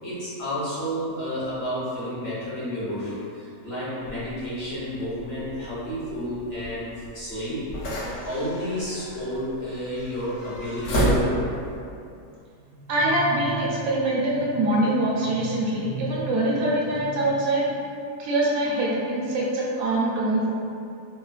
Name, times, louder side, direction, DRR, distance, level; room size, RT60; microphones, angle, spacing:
voice 1, 0.0-6.9 7.1-7.6 8.2-11.5, equal, 55° left, -10 dB, 0.8 m, -31 dB
sound 1, 4.0-11.8, right 1 dB, 80° left, 1.1 m, -31 dB
voice 2, 12.7-17.7 18.2-20.5, right 1 dB, 75° right, -5 dB, 1.0 m, -24 dB
3.1 x 2.1 x 2.4 m, 2.5 s
omnidirectional pair, 1.5 m